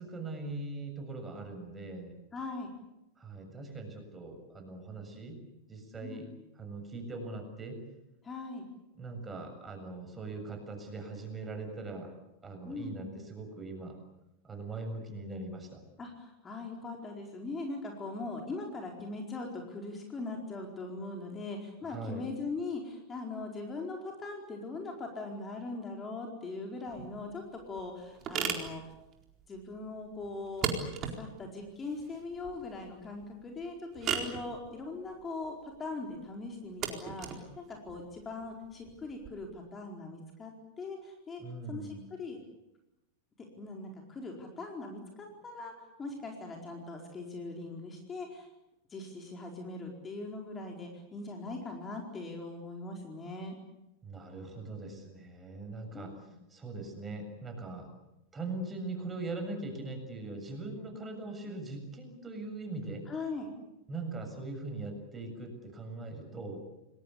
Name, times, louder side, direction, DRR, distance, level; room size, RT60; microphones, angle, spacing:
voice 1, 0.0-2.2 3.2-5.4 5.7-6.3 6.6-7.8 9.0-12.1 12.4-14.0 14.4-15.8 21.8-22.2 41.4-42.0 54.0-57.9 58.3-63.1 63.9-66.6, right 2 dB, 15° right, 5 dB, 7.2 m, -41 dB
voice 2, 2.3-2.7 6.0-6.2 8.2-8.6 12.6-13.1 16.0-28.8 29.5-30.8 31.1-41.4 41.7-42.4 43.6-48.5 48.9-53.6 55.9-56.3 63.1-63.5, left 3 dB, 20° left, 1 dB, 4.6 m, -40 dB
sound 1, 26.9-39.3, right 7 dB, 30° right, 4.3 m, -39 dB
29.0 x 21.0 x 8.4 m, 0.90 s
figure-of-eight pair, 90°, 0 cm